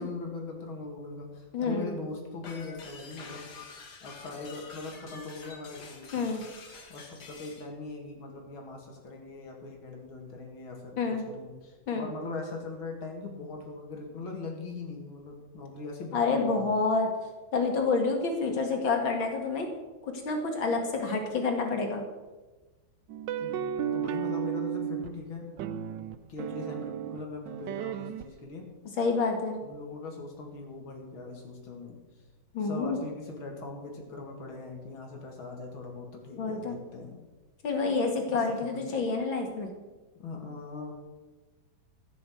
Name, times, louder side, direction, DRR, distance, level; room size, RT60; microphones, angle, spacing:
voice 1, 0.0-3.5 4.0-6.4 6.9-16.8 18.5-18.6 23.4-25.5 26.3-28.7 29.6-32.0 32.6-37.2 38.3-39.0 40.2-40.9, left 3 dB, 90° left, 1 dB, 3.0 m, -41 dB
voice 2, 1.5-2.0 6.1-6.4 11.0-11.3 11.9-12.1 16.1-17.1 17.5-19.7 20.2-22.0 29.0-29.6 32.5-33.0 36.3-36.8 37.6-39.7, left 4 dB, 75° left, 3 dB, 2.8 m, -28 dB
sound 1, 2.4-7.7, left 4 dB, 55° left, 2.1 m, -47 dB
sound 2, 23.1-25.2 25.6-28.2, right 9 dB, 75° right, 1.2 m, -33 dB
15.0 x 6.9 x 7.8 m, 1.2 s
omnidirectional pair, 2.2 m